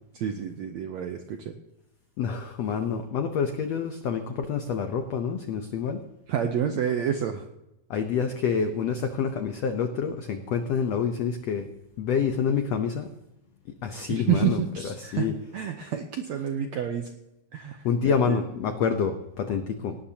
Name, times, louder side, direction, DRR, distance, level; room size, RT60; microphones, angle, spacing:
voice 1, 0.1-1.6 6.3-7.5 14.1-17.1 17.5-18.4, right 8 dB, 80° right, 5 dB, 1.6 m, -29 dB
voice 2, 2.2-6.0 7.9-11.7 12.0-13.1 13.8-15.3 17.8-20.0, left 6 dB, 90° left, 6 dB, 1.4 m, -27 dB
18.5 x 18.0 x 2.9 m, 0.91 s
omnidirectional pair, 4.2 m